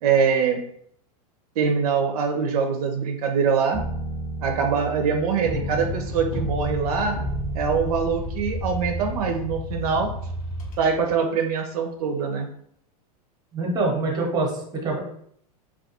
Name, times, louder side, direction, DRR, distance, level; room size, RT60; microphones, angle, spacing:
voice 1, 0.0-0.6 1.6-3.8 4.4-7.2 7.5-10.1 10.8-12.5, right 6 dB, 75° right, 4 dB, 0.4 m, -23 dB
sound 1, 3.7-9.2, right 1 dB, 25° left, 0.6 m, -32 dB
sound 2, 5.6-11.2, left 1 dB, 70° left, 0.8 m, -33 dB
voice 2, 13.5-15.0, right 3 dB, 20° right, 0 dB, 0.7 m, -25 dB
2.3 x 2.2 x 2.7 m, 0.67 s
supercardioid pair, 125°, 20 cm